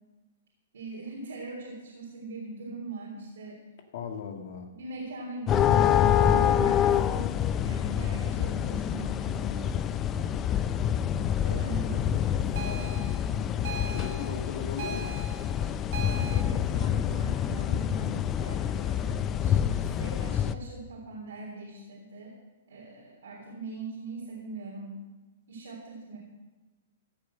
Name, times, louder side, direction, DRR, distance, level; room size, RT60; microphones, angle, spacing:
voice 1, 0.7-3.6 4.7-7.4 7.6-9.8 11.4-13.1 16.1-22.4 22.7-25.1 25.5-26.2, right 3 dB, 85° right, -3 dB, 3.6 m, -41 dB
voice 2, 3.9-4.7 13.8-15.2, left 6 dB, 60° left, 4 dB, 1.8 m, -37 dB
sound 1, 5.5-20.5, left 9 dB, 25° left, 0.5 m, -27 dB
sound 2, 12.6-16.4, right 3 dB, 60° right, 1.5 m, -40 dB
15.5 x 7.5 x 7.7 m, 1.2 s
hypercardioid pair, 145°, 0 cm